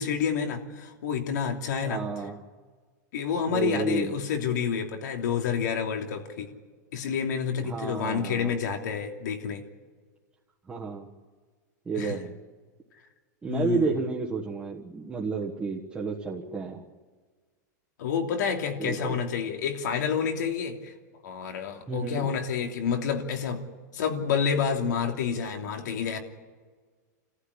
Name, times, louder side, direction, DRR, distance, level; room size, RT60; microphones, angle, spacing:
voice 1, 0.0-2.0 3.1-6.5 6.9-9.6 11.9-12.2 13.5-13.9 18.0-20.9 21.2-23.6 23.9-26.2, left 7 dB, 80° left, 3 dB, 3.0 m, -29 dB
voice 2, 1.8-2.4 3.5-4.1 7.5-8.5 10.7-11.1 11.8-12.3 13.4-16.8 18.8-19.2 21.9-22.3, right 4 dB, 10° right, -4 dB, 1.5 m, -31 dB
28.0 x 15.0 x 9.9 m, 1.5 s
supercardioid pair, 165°, 10 cm